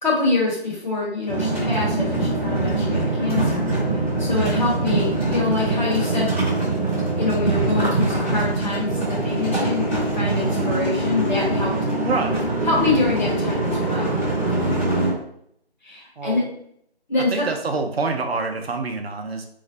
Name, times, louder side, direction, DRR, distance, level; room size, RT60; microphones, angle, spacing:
voice 1, 0.0-3.7 4.2-6.4 7.2-11.9 12.6-14.2 15.8-16.4 17.1-17.5, left 3 dB, 45° left, -5 dB, 1.3 m, -25 dB
sound 1, 1.3-15.1, right 2 dB, 10° left, 1.0 m, -23 dB
voice 2, 12.0-12.5 16.2-16.4 17.3-19.5, right 3 dB, 70° right, 4 dB, 0.6 m, -26 dB
3.2 x 2.1 x 3.8 m, 0.70 s
figure-of-eight pair, 165°, 32 cm